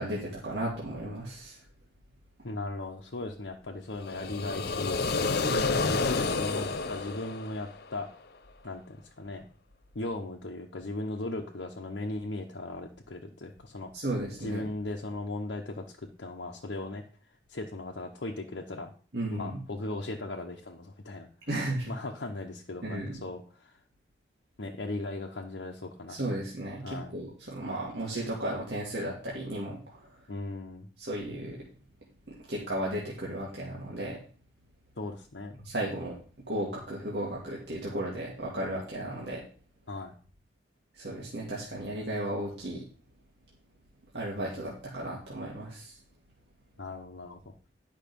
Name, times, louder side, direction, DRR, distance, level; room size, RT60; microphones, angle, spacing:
voice 1, 0.0-1.6 5.4-5.9 13.9-14.7 19.1-19.6 21.5-21.9 22.8-23.2 26.1-30.1 31.0-31.7 32.3-34.2 35.6-36.2 36.5-39.4 40.9-42.9 44.1-46.0, right 1 dB, 70° right, -4 dB, 2.1 m, -35 dB
voice 2, 2.4-5.2 5.8-8.1 8.6-9.5 9.9-13.9 14.4-15.9 16.2-17.0 17.5-18.9 19.3-21.3 21.9-23.8 24.6-26.2 26.8-27.1 30.3-30.9 35.0-35.6 39.9-40.1 46.8-47.5, left 2 dB, 80° left, 0 dB, 1.0 m, -37 dB
sound 1, 4.0-8.0, left 4 dB, 60° left, 0.7 m, -29 dB
10.5 x 5.5 x 5.3 m, 0.42 s
head